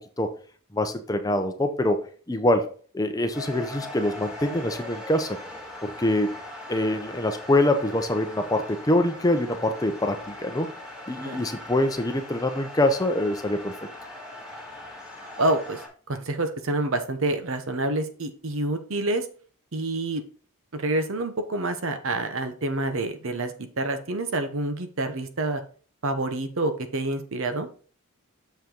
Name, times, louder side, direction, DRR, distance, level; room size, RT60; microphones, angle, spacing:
voice 1, 0.7-2.0 2.3-2.7 2.9-5.4 5.8-6.3 6.7-10.7 11.1-13.7, left 1 dB, 15° left, 6 dB, 0.7 m, -24 dB
sound 1, 3.3-15.9, left 2 dB, 5° right, 2.1 m, -40 dB
voice 2, 15.4-15.8 16.1-19.3 19.7-20.2 20.7-25.6 26.0-27.7, right 2 dB, 60° right, 8 dB, 0.9 m, -27 dB
6.8 x 5.4 x 3.8 m, 0.42 s
head